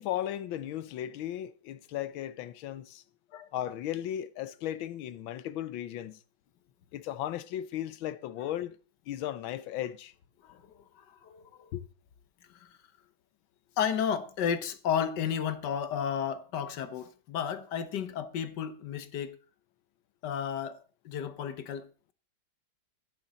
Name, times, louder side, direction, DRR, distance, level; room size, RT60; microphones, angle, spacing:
voice 1, 0.0-3.0 3.5-6.2 6.9-8.7 9.1-10.1 11.7-11.8, left 12 dB, 90° left, 1.6 m, -36 dB
voice 2, 10.4-11.7 12.5-12.7 13.8-19.4 20.2-21.9, left 8 dB, 65° left, 1.4 m, -33 dB
13.0 x 10.5 x 4.1 m
omnidirectional pair, 2.1 m